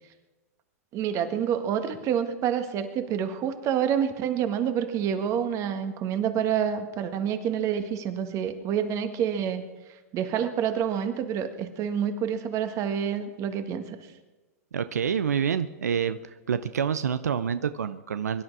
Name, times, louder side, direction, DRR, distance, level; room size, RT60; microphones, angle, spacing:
voice 1, 0.9-9.6 10.1-14.0, right 8 dB, 35° right, 8 dB, 1.7 m, -28 dB
voice 2, 14.7-18.4, right 7 dB, 90° right, 12 dB, 0.6 m, -27 dB
23.0 x 11.0 x 4.8 m, 1.2 s
hypercardioid pair, 120°, 8 cm